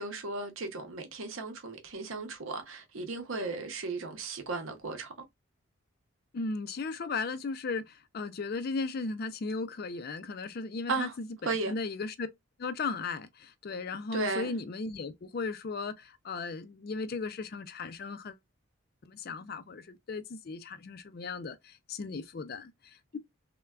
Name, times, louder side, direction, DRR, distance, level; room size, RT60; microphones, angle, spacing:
voice 1, 0.0-5.1 10.9-11.1 11.4-11.7 14.1-14.5, right 3 dB, 70° right, 0.7 m, -35 dB
voice 2, 6.3-12.3 12.6-18.4 19.1-23.2, left 4 dB, 45° left, 0.4 m, -36 dB
3.3 x 2.2 x 2.3 m
head